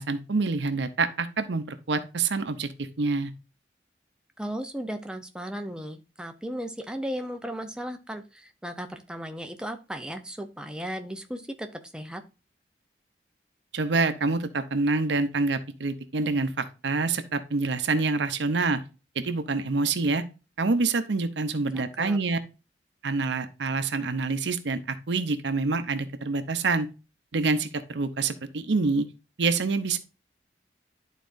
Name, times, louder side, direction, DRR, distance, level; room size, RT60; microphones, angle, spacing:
voice 1, 0.0-2.7 3.0-3.3 13.7-18.8 19.2-20.2 20.6-22.4 23.0-26.9 27.3-29.1 29.4-30.0, right 3 dB, 75° right, 10 dB, 0.7 m, -26 dB
voice 2, 4.4-11.7 11.9-12.2 21.7-22.2, equal, 5° right, 6 dB, 0.6 m, -36 dB
11.5 x 4.1 x 2.6 m, 0.31 s
head